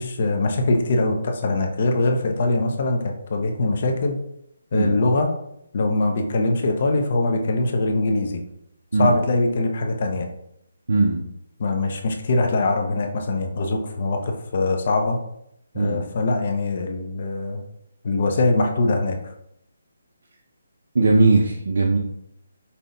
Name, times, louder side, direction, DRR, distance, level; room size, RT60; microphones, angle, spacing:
voice 1, 0.0-4.2 4.7-5.3 5.7-8.4 9.0-10.3 11.6-15.2 15.7-17.6 18.0-19.2, left 2 dB, 40° left, 3 dB, 0.7 m, -22 dB
voice 2, 10.9-11.3 15.7-16.1 20.9-22.0, right 3 dB, 70° right, 0 dB, 0.6 m, -19 dB
5.5 x 2.3 x 3.9 m, 0.76 s
hypercardioid pair, 170°, 0 cm